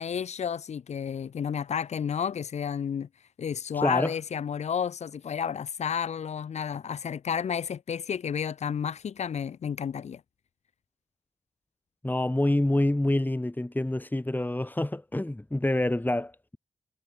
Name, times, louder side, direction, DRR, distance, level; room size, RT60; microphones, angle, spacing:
voice 1, 0.0-3.1 3.4-10.2, left 7 dB, 85° left, 7.7 m, -31 dB
voice 2, 3.7-4.1 12.0-16.6, left 1 dB, 15° left, 2.5 m, -27 dB
supercardioid pair, 40°, 11 cm